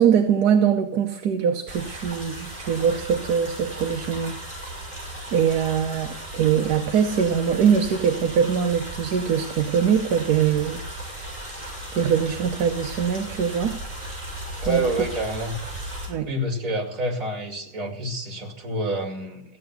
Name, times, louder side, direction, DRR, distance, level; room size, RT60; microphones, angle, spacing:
voice 1, 0.0-4.4 5.3-10.8 11.9-13.8 14.6-14.8 16.1-16.3, right 7 dB, 60° right, 5 dB, 1.3 m, -22 dB
sound 1, 1.7-16.1, right 1 dB, 15° right, 6.7 m, -36 dB
voice 2, 14.6-15.6 16.3-19.4, right 1 dB, 40° right, 2 dB, 2.9 m, -28 dB
15.5 x 9.0 x 7.9 m, 0.74 s
omnidirectional pair, 2.1 m